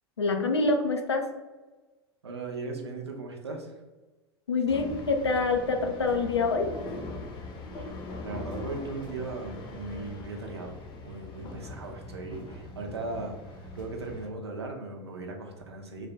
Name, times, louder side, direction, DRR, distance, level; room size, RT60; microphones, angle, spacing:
voice 1, 0.2-1.3 4.5-6.7, left 3 dB, 85° left, 5 dB, 0.4 m, -26 dB
voice 2, 2.2-3.7 7.8-7.9 8.2-13.3 13.7-16.1, right 3 dB, 80° right, 2 dB, 0.6 m, -38 dB
sound 1, 4.7-14.3, left 2 dB, 35° left, 0.7 m, -41 dB
3.2 x 2.2 x 3.7 m, 1.2 s
figure-of-eight pair, 80°, 14 cm